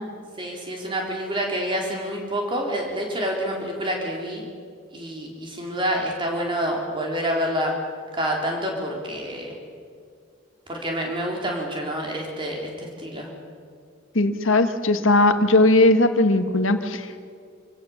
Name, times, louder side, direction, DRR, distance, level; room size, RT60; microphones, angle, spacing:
voice 1, 0.4-4.4 4.9-7.7 8.1-9.5 10.7-13.3, equal, 25° right, 0 dB, 3.9 m, -27 dB
voice 2, 14.1-17.1, left 2 dB, 80° left, 8 dB, 1.6 m, -18 dB
27.0 x 16.5 x 7.3 m, 2.2 s
head